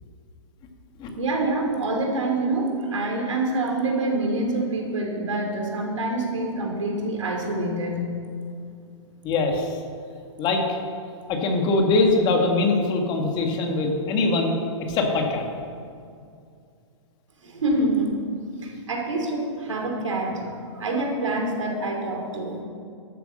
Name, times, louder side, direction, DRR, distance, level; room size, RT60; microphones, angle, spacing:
voice 1, 1.2-8.1 17.4-18.1 18.6-20.4 20.7-22.6, right 2 dB, 85° right, 1 dB, 3.1 m, -26 dB
voice 2, 9.2-9.7 10.4-10.6 11.3-14.6 14.9-15.4, left 3 dB, 30° left, 3 dB, 1.9 m, -22 dB
12.5 x 8.2 x 6.6 m, 2.3 s
hypercardioid pair, 130°, 15 cm